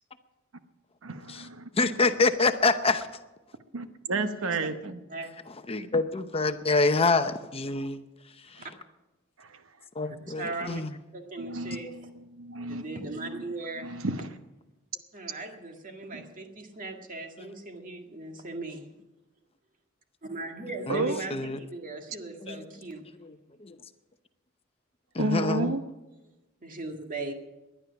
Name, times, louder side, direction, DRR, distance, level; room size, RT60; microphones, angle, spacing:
voice 1, 1.0-1.7 3.7-5.0 9.4-9.6 11.4-13.4 13.8-14.3 16.1-16.3 20.9-21.2 25.2-25.8, right 2 dB, 70° right, 9 dB, 0.9 m, -32 dB
voice 2, 1.7-3.1 5.5-8.0 8.5-8.7 9.9-11.0 17.4-17.5 20.9-21.6 22.4-22.6 23.2-23.3 23.6-23.8 25.1-25.8, left 3 dB, 30° left, 9 dB, 0.8 m, -26 dB
voice 3, 10.2-10.8 11.1-11.9 12.7-13.9 15.1-18.8 20.2-23.0 26.6-27.3, right 2 dB, 40° right, 4 dB, 2.0 m, -38 dB
19.5 x 11.5 x 5.9 m, 1.0 s
head